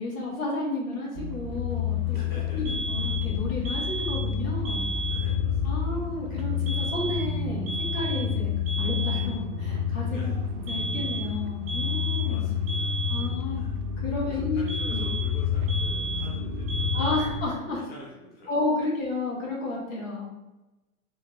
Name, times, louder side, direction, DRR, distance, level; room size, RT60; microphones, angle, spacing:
voice 1, 0.0-2.2 2.5-4.8 5.6-8.5 8.8-10.3 10.7-12.4 13.1-13.6 14.0-15.0 16.9-17.8 18.5-20.3, left 2 dB, 60° left, -4 dB, 1.5 m, -32 dB
sound 1, 1.1-17.4, left 7 dB, 80° right, 0.6 m, -29 dB
voice 2, 2.1-2.8 5.0-6.0 10.1-10.4 12.2-12.9 13.5-13.8 14.3-17.2 17.6-18.5, equal, 20° left, -6 dB, 0.7 m, -46 dB
sound 2, 2.6-3.3 3.6-4.3 4.6-5.3 6.7-7.3 7.7-8.3 8.7-9.3 10.7-11.3 11.7-12.3 12.7-13.3 14.7-15.4 15.7-16.3 16.7-17.3, right 3 dB, 15° right, 0.5 m, -33 dB
3.5 x 2.3 x 3.0 m, 1.0 s
hypercardioid pair, 120°, 45 cm